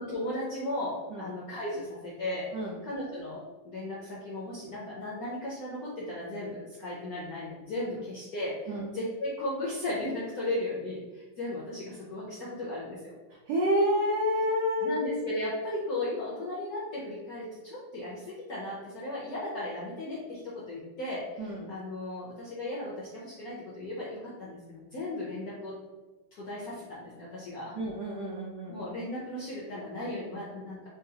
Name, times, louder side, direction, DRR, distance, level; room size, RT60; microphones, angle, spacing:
voice 1, 0.0-13.1 14.8-25.7 26.3-27.7 28.7-30.9, left 1 dB, 70° left, -6 dB, 0.8 m, -36 dB
voice 2, 13.5-15.1 21.4-21.6 27.7-28.9, equal, 80° right, -4 dB, 0.8 m, -28 dB
3.8 x 2.3 x 2.7 m, 1.2 s
omnidirectional pair, 2.2 m